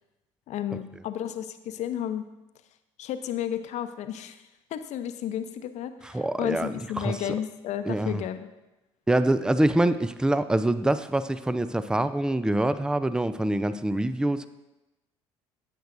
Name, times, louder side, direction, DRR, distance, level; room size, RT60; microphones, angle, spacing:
voice 1, 0.5-2.3 3.0-4.4 4.7-8.5, left 10 dB, 55° left, 10 dB, 0.8 m, -32 dB
voice 2, 6.0-7.2 7.9-8.2 9.1-14.5, right 1 dB, 5° right, 13 dB, 0.5 m, -25 dB
14.5 x 9.1 x 2.6 m, 1.0 s
figure-of-eight pair, 55°, 14 cm